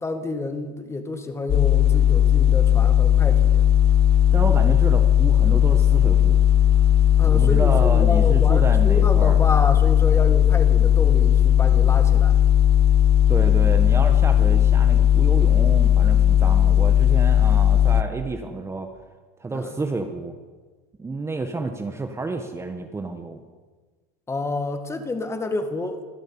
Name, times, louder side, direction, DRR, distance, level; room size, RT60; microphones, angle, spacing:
voice 1, 0.0-3.7 7.2-12.4 19.5-19.7 24.3-26.0, left 2 dB, 15° left, 8 dB, 2.1 m, -29 dB
sound 1, 1.5-18.0, left 11 dB, 30° left, 0.7 m, -17 dB
voice 2, 4.3-6.4 7.3-9.4 13.3-18.9 19.4-20.3 21.0-23.4, right 3 dB, 15° right, 5 dB, 1.5 m, -30 dB
24.0 x 14.5 x 8.9 m, 1.4 s
cardioid pair, 145°, 21 cm